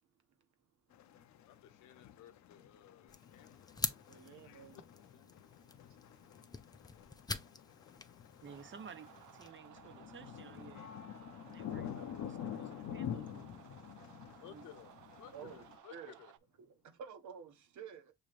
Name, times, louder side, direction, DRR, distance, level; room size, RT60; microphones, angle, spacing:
sound 1, 0.9-15.8, left 9 dB, 65° left, 0.6 m, -48 dB
voice 1, 1.4-3.7 4.4-5.9 6.2-6.5 13.9-14.9 15.2-16.3, left 10 dB, 90° left, 0.9 m, -58 dB
sound 2, 3.1-9.5, left 3 dB, 15° left, 0.5 m, -45 dB
voice 2, 4.1-4.8 15.3-15.6 15.9-16.2 16.6-18.1, right 7 dB, 70° right, 1.2 m, -50 dB
voice 3, 8.4-10.9 11.4-13.7 14.3-14.7, right 6 dB, 40° right, 0.9 m, -54 dB
sound 3, 8.4-16.4, right 14 dB, 85° right, 0.5 m, -59 dB
6.4 x 3.2 x 2.4 m
cardioid pair, 90°, 30 cm